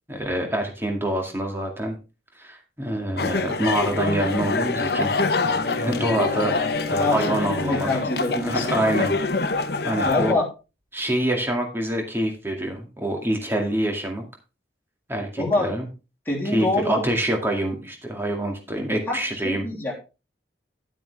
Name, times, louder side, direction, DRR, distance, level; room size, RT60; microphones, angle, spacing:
voice 1, 0.1-2.0 2.4-5.1 5.8-6.6 6.9-7.9 8.4-9.1 9.8-10.4 10.9-14.2 15.1-15.9 16.3-19.7, right 1 dB, 15° right, 2 dB, 2.1 m, -26 dB
sound 1, 3.2-10.3, left 3 dB, 60° left, 0.9 m, -25 dB
Bowed string instrument, 5.3-10.0, left 4 dB, 30° right, 3.5 m, -36 dB
voice 2, 7.0-7.3 7.7-8.7 10.0-10.4 15.4-15.7 16.2-17.0 19.1-19.2 19.4-19.9, left 2 dB, 10° left, -3 dB, 3.3 m, -24 dB
10.5 x 8.9 x 3.4 m, 0.30 s
head